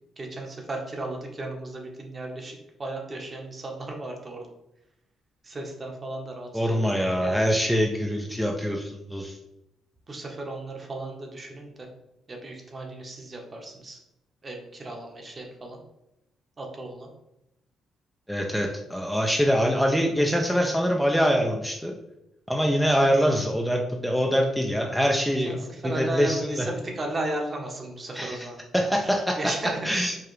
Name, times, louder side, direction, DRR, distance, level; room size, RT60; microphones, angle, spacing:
voice 1, 0.2-4.5 5.4-7.4 10.1-11.7 12.3-14.0 14.4-15.8 16.6-17.1 25.5-28.5 29.0-30.2, right 2 dB, 35° right, 1 dB, 1.0 m, -35 dB
voice 2, 6.5-9.4 18.3-21.9 22.5-26.7 28.1-28.5 28.7-29.4 29.8-30.2, equal, ahead, 0 dB, 0.4 m, -24 dB
4.7 x 2.4 x 3.1 m, 0.86 s
cardioid pair, 90°, 0 cm